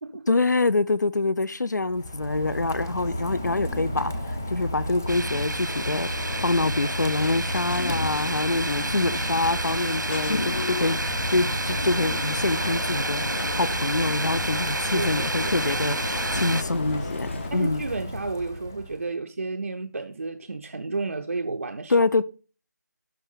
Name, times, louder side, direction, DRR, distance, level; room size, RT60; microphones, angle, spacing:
voice 1, 0.3-4.1 4.5-17.8 21.9-22.2, left 3 dB, 70° left, 0.7 m, -25 dB
Rain, 1.8-19.1, left 1 dB, 10° left, 0.4 m, -33 dB
sound 1, 5.1-16.6, right 2 dB, 85° right, 1.3 m, -30 dB
sound 2, 5.7-17.5, left 3 dB, 40° left, 0.7 m, -35 dB
voice 2, 14.9-15.5 17.5-22.0, right 3 dB, 50° right, 0.6 m, -32 dB
12.0 x 4.6 x 5.5 m
figure-of-eight pair, 170°, 10 cm